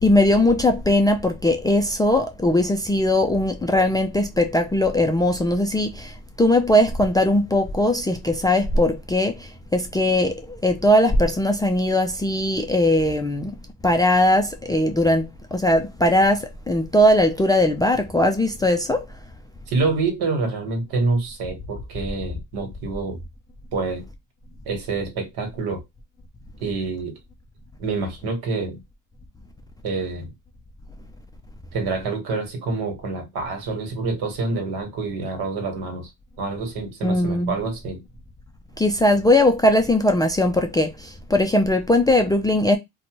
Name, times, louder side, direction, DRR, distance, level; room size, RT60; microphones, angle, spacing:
voice 1, 0.0-13.5 13.8-19.1 37.0-37.6 38.8-42.8, left 1 dB, 10° left, 0.3 m, -19 dB
voice 2, 19.7-23.2 23.7-24.1 24.7-25.8 26.6-27.2 27.8-28.8 29.8-30.3 31.7-36.1 36.4-38.0, right 3 dB, 70° right, 1.3 m, -27 dB
2.6 x 2.2 x 2.9 m
supercardioid pair, 85°, 39 cm